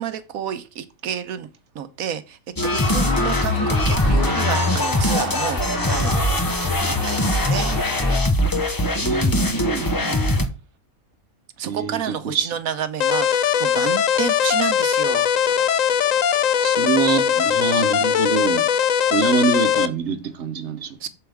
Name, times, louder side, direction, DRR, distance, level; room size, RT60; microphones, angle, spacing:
voice 1, 0.0-1.5 1.7-5.6 5.9-6.2 6.9-7.7 10.0-10.2 11.6-15.3 21.0-21.1, right 8 dB, 80° right, 1.3 m, -30 dB
sound 1, 2.6-10.5, left 1 dB, 20° left, 0.7 m, -21 dB
sound 2, 2.8-8.2, left 1 dB, 40° left, 2.0 m, -29 dB
voice 2, 9.0-9.9 11.6-12.5 16.5-18.7 19.1-21.1, right 6 dB, 55° right, 1.2 m, -25 dB
sound 3, 13.0-19.9, left 8 dB, 70° left, 1.1 m, -20 dB
7.9 x 7.1 x 3.5 m
omnidirectional pair, 1.5 m